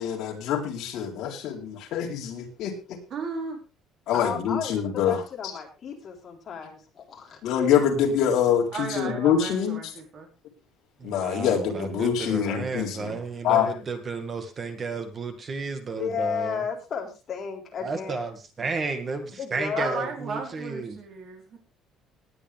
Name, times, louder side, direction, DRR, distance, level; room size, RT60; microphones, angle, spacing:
voice 1, 0.0-3.0 4.1-5.2 7.4-9.8 11.0-13.2 13.4-13.7, left 8 dB, 60° left, 0 dB, 3.9 m, -25 dB
voice 2, 3.1-3.6 8.7-10.3 19.7-21.6, right 4 dB, 40° right, 2 dB, 4.5 m, -35 dB
voice 3, 4.1-7.4 16.0-18.2 19.4-20.1, left 6 dB, 30° left, 0 dB, 3.9 m, -33 dB
voice 4, 11.0-16.6 17.8-21.0, right 4 dB, 25° right, 7 dB, 2.1 m, -33 dB
19.5 x 8.8 x 3.5 m, 0.30 s
cardioid pair, 170°, 0 cm